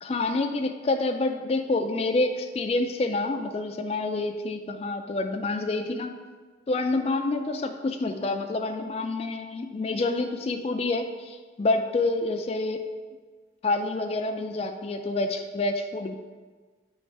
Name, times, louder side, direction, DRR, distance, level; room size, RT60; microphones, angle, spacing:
voice 1, 0.0-6.1 6.7-12.9 13.6-16.1, left 2 dB, 30° left, 5 dB, 0.3 m, -28 dB
8.1 x 3.1 x 4.6 m, 1.4 s
head